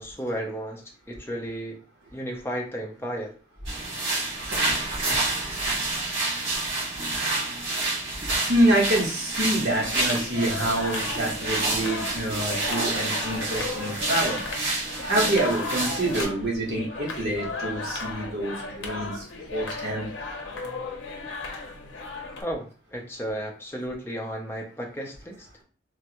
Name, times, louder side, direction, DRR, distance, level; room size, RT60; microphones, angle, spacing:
voice 1, 0.0-1.8 2.1-3.3 22.4-25.5, equal, 10° left, 0 dB, 0.5 m, -33 dB
sound 1, 3.7-16.2, right 2 dB, 80° right, 1.6 m, -29 dB
voice 2, 5.4-5.7 8.5-14.4 15.0-19.2 19.5-20.1, right 1 dB, 60° right, -3 dB, 1.2 m, -26 dB
sound 2, 9.4-22.4, left 3 dB, 80° left, 0.6 m, -35 dB
3.4 x 2.1 x 2.9 m, 0.38 s
head